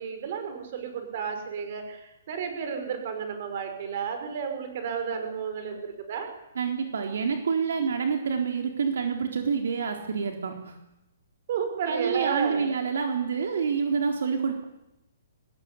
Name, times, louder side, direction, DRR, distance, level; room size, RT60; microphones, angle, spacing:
voice 1, 0.0-6.3 11.5-12.7, right 7 dB, 35° right, 7 dB, 5.5 m, -32 dB
voice 2, 6.6-10.8 11.9-14.6, right 6 dB, 65° right, 4 dB, 3.9 m, -27 dB
23.5 x 20.5 x 9.9 m, 0.87 s
hypercardioid pair, 180°, 0 cm